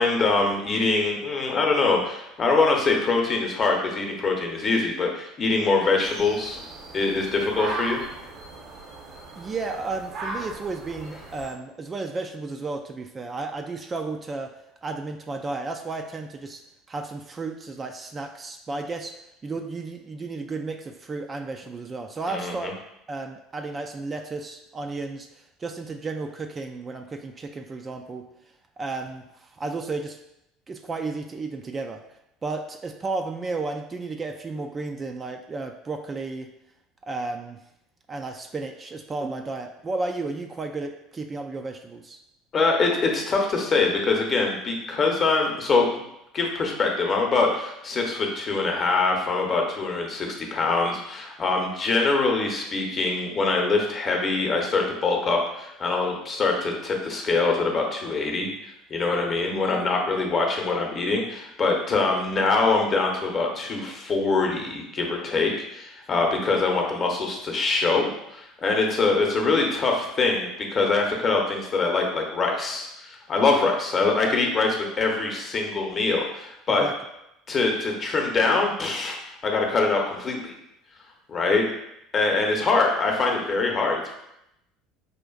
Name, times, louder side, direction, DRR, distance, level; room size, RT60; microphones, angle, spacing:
voice 1, 0.0-6.6 6.9-8.1 22.3-22.7 42.5-46.0 46.3-58.5 58.9-76.9 77.5-79.2 79.4-80.5 81.3-81.6 82.1-84.2, left 3 dB, 35° left, 1 dB, 0.8 m, -24 dB
sound 1, 6.0-11.5, right 2 dB, 55° right, 0.8 m, -37 dB
voice 2, 9.4-14.5 14.8-16.6 16.9-19.1 19.4-22.7 23.1-25.3 25.6-28.3 28.8-30.2 30.7-32.0 32.4-36.5 37.0-37.6 38.1-42.2 76.7-76.9, right 3 dB, 30° right, 4 dB, 0.3 m, -33 dB
5.0 x 2.5 x 2.3 m, 0.84 s
figure-of-eight pair, 65°, 0 cm